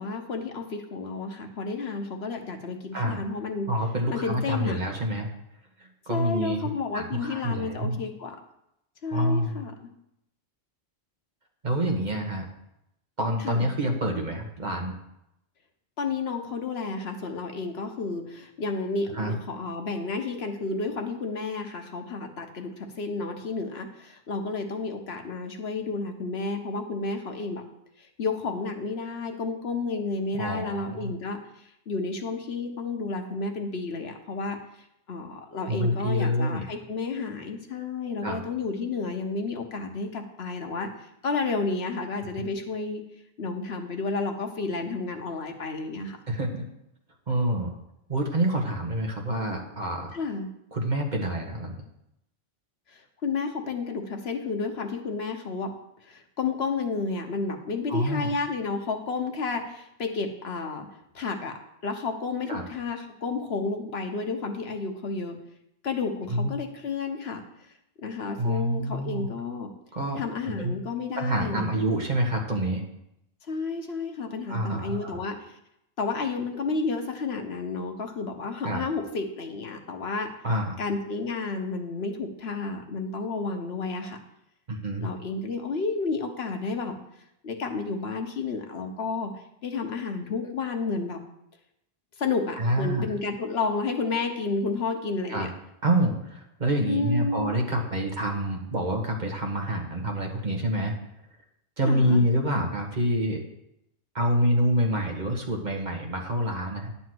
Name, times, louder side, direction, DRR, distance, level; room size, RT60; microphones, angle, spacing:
voice 1, 0.0-3.7 4.1-4.8 6.1-8.4 9.0-9.9 13.4-13.7 16.0-27.6 28.0-34.6 35.1-43.0 43.4-46.2 50.1-50.5 52.9-55.7 56.0-60.9 61.1-65.4 65.8-67.4 68.0-69.7 70.2-71.8 73.5-75.6 76.0-80.3 80.8-84.2 85.0-87.0 87.4-89.3 89.6-91.2 92.2-95.5 96.8-97.5 101.9-102.3, left 4 dB, 80° left, 4 dB, 1.3 m, -31 dB
voice 2, 3.7-5.3 5.8-8.0 9.1-9.6 11.6-12.4 13.2-14.9 19.1-19.3 30.3-31.1 35.7-36.6 38.2-38.4 46.3-46.6 47.3-47.7 48.1-50.1 50.7-51.8 57.9-58.3 62.5-62.6 66.3-66.5 68.4-69.3 69.9-70.7 71.2-72.8 74.5-75.2 78.6-78.8 80.4-80.8 84.7-85.1 92.6-93.1 95.3-95.5 95.8-100.9 101.8-103.4 104.1-106.9, equal, 45° right, 1 dB, 1.5 m, -27 dB
10.5 x 4.3 x 7.8 m, 0.81 s
omnidirectional pair, 1.0 m